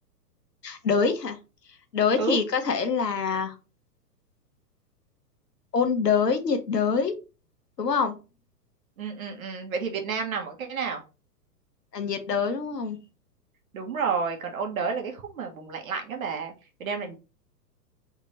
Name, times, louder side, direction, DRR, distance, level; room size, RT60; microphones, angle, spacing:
voice 1, 0.6-1.4 1.9-3.5 5.7-7.1 7.8-8.1 11.9-13.0, left 5 dB, 75° left, 7 dB, 1.1 m, -25 dB
voice 2, 9.0-11.0 13.7-16.5 16.8-17.1, right 5 dB, 55° right, 3 dB, 1.4 m, -30 dB
4.1 x 3.7 x 3.2 m, 0.30 s
figure-of-eight pair, 110°, 49 cm